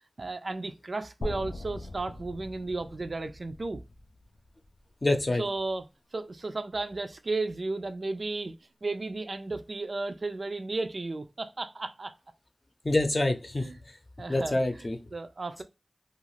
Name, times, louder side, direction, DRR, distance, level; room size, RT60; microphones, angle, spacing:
voice 1, 0.2-3.8 5.4-5.9 6.1-8.6 8.8-12.1 13.6-13.8 14.2-15.6, right 3 dB, 65° right, 0.4 m, -34 dB
sound 1, 1.2-5.2, left 1 dB, 90° left, 0.4 m, -41 dB
voice 2, 5.0-5.4 12.8-13.7 14.3-15.0, left 2 dB, 45° left, 0.6 m, -26 dB
2.4 x 2.4 x 3.1 m
cardioid pair, 45°, 0 cm